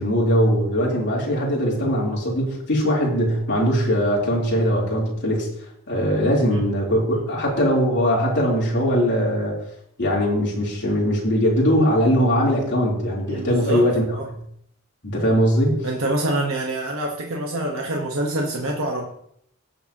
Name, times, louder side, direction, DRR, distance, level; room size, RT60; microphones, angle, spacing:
voice 1, 0.0-5.5 5.9-9.6 10.0-14.0 15.0-15.9, equal, 55° left, -4 dB, 3.6 m, -20 dB
voice 2, 13.3-14.3 15.8-19.0, right 1 dB, 65° right, 0 dB, 1.3 m, -26 dB
18.5 x 7.1 x 3.0 m, 0.70 s
head